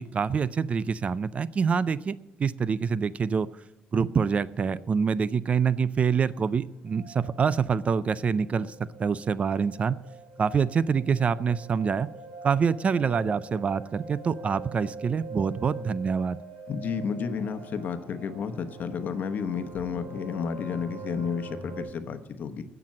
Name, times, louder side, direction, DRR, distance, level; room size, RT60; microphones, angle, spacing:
voice 1, 0.0-3.5 3.9-10.0 10.4-12.1 12.4-16.4, right 6 dB, 35° right, 18 dB, 0.4 m, -26 dB
sound 1, 6.3-6.4 6.9-7.5 7.8-21.8, right 2 dB, 85° right, 3.6 m, -45 dB
voice 2, 16.7-22.6, left 6 dB, 50° left, 9 dB, 1.0 m, -31 dB
16.5 x 6.0 x 7.5 m, 0.94 s
cardioid pair, 120°, 4 cm